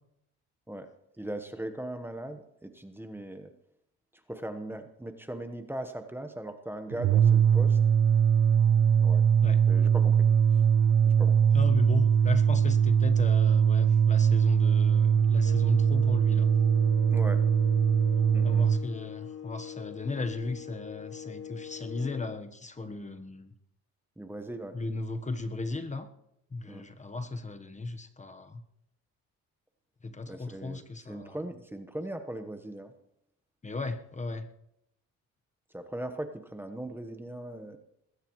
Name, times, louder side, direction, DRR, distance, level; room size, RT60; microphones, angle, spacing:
voice 1, 1.2-3.5 4.3-7.8 9.0-9.2 9.7-10.3 10.5-10.6 11.0-11.4 17.1-17.4 18.3-18.7 24.2-24.8 26.6-26.9 30.3-32.9 35.7-37.8, right 1 dB, 5° right, 7 dB, 1.2 m, -39 dB
sound 1, 6.9-18.8, right 7 dB, 70° right, 0.7 m, -22 dB
voice 2, 11.5-16.5 18.4-23.5 24.7-26.1 26.5-28.6 30.0-31.4 33.6-34.5, left 3 dB, 25° left, 8 dB, 1.2 m, -36 dB
sound 2, 15.4-22.5, left 9 dB, 50° left, 1.3 m, -43 dB
20.5 x 16.5 x 3.2 m, 0.81 s
cardioid pair, 90°, 30 cm